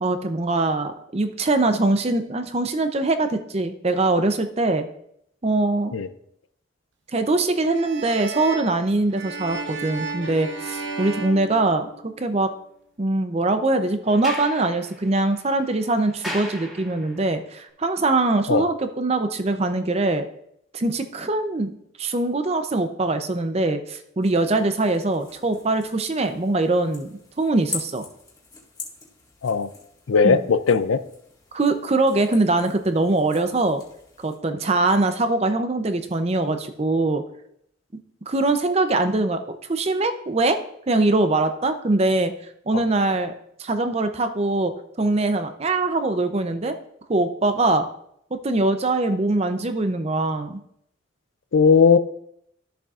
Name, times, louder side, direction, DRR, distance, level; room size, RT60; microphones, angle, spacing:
voice 1, 0.0-4.9 5.4-5.9 7.1-12.5 13.0-20.3 20.7-28.1 30.2-30.4 31.5-33.8 34.2-37.2 38.3-40.6 40.9-42.3 42.7-43.3 43.6-46.7 47.1-47.9 48.3-50.6, right 2 dB, 30° right, 9 dB, 0.6 m, -22 dB
sound 1, 7.7-12.3, right 3 dB, 60° right, 0.9 m, -34 dB
Sliding door, 14.0-17.3, equal, ahead, 1.9 m, -37 dB
sound 2, 24.2-34.4, left 4 dB, 20° left, 1.9 m, -42 dB
voice 2, 30.1-31.0 42.7-42.8 51.5-52.0, left 5 dB, 85° left, 12 dB, 0.5 m, -17 dB
13.0 x 6.8 x 2.5 m, 0.73 s
head